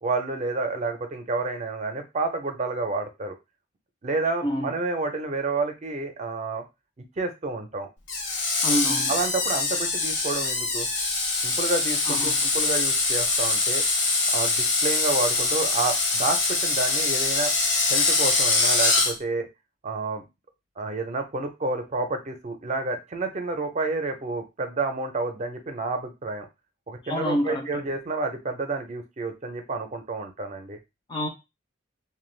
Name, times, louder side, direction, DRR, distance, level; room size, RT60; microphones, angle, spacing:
voice 1, 0.0-3.4 4.0-6.6 7.2-7.9 9.1-10.9 11.4-13.8 14.3-17.5 17.9-19.5 19.8-20.2 20.8-26.5 26.9-30.8, right 3 dB, 35° right, 6 dB, 0.5 m, -29 dB
Screech, 8.1-19.1, left 3 dB, 70° left, 0.9 m, -24 dB
voice 2, 8.6-9.1 12.1-12.5 27.0-27.7 31.1-31.3, equal, 25° left, 3 dB, 0.4 m, -27 dB
2.4 x 2.2 x 3.1 m, 0.24 s
head